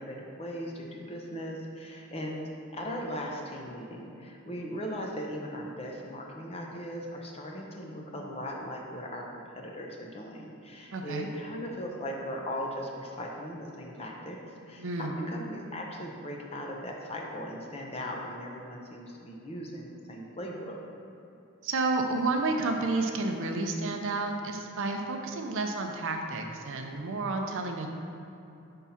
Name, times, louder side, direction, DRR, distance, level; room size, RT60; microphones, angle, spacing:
voice 1, 0.0-20.8, equal, 25° left, -1 dB, 0.7 m, -38 dB
voice 2, 10.9-11.3 14.8-15.2 21.6-27.9, right 3 dB, 60° right, 4 dB, 0.5 m, -31 dB
5.6 x 3.6 x 5.6 m, 2.9 s
head